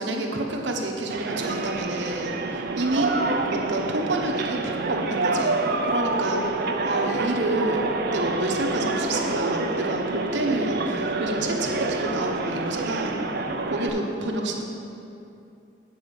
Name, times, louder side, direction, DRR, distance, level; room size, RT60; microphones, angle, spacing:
voice 1, 0.0-5.5 5.8-13.2 13.7-14.6, right 2 dB, 80° right, 1 dB, 1.0 m, -28 dB
sound 1, 1.1-13.9, right 3 dB, 60° right, 0.6 m, -27 dB
8.6 x 4.9 x 6.5 m, 2.7 s
head